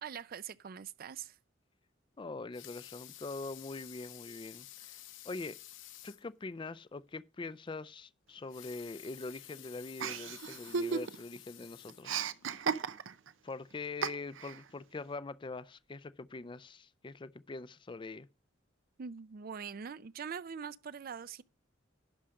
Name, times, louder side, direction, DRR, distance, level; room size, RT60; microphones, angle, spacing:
voice 1, 0.0-1.4 19.0-21.4, right 7 dB, 50° right, 0.4 m, -43 dB
voice 2, 2.2-5.6 6.0-12.2 13.4-18.3, left 3 dB, 25° left, 0.4 m, -43 dB
Water tap faucet / Sink (filling or washing) / Liquid, 2.3-6.3 6.8-6.9 7.2-7.3 8.4-12.5 13.1-13.2, left 13 dB, 75° left, 0.8 m, -52 dB
Chuckle chortle, 10.0-11.4 11.6-13.3 14.0-14.6, right 6 dB, 85° right, 0.7 m, -35 dB
11.5 x 4.9 x 6.4 m
head